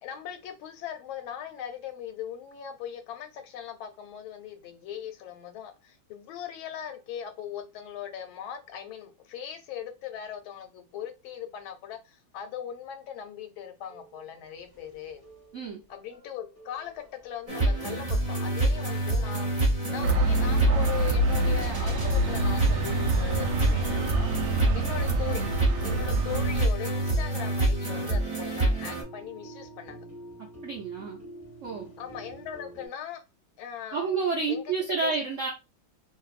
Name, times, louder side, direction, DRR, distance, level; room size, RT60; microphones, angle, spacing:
voice 1, 0.0-15.2 15.9-25.4 25.8-30.0 32.0-33.2 33.6-34.1 34.5-35.1, left 9 dB, 90° left, 1.5 m, -39 dB
sound 1, 13.9-32.9, right 1 dB, 10° left, 1.0 m, -48 dB
sound 2, 17.5-29.0, right 2 dB, 25° right, 0.8 m, -27 dB
sound 3, 20.0-26.6, right 2 dB, 70° right, 1.1 m, -27 dB
voice 2, 30.6-31.2 31.6-31.9 33.9-35.5, right 4 dB, 90° right, 0.6 m, -29 dB
2.9 x 2.6 x 2.4 m
omnidirectional pair, 2.2 m